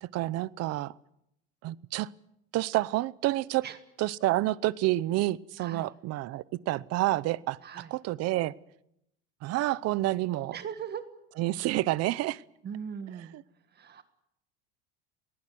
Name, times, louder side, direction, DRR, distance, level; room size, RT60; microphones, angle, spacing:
voice 1, 0.0-0.9 1.6-2.1 2.5-3.6 4.0-8.5 9.4-10.6 11.4-12.4 13.3-13.4, right 17 dB, 50° right, 20 dB, 0.8 m, -29 dB
voice 2, 10.5-11.0 12.6-13.3 13.8-14.0, right 8 dB, 30° right, 10 dB, 1.6 m, -39 dB
20.0 x 19.0 x 9.4 m, 0.79 s
cardioid pair, 135°, 31 cm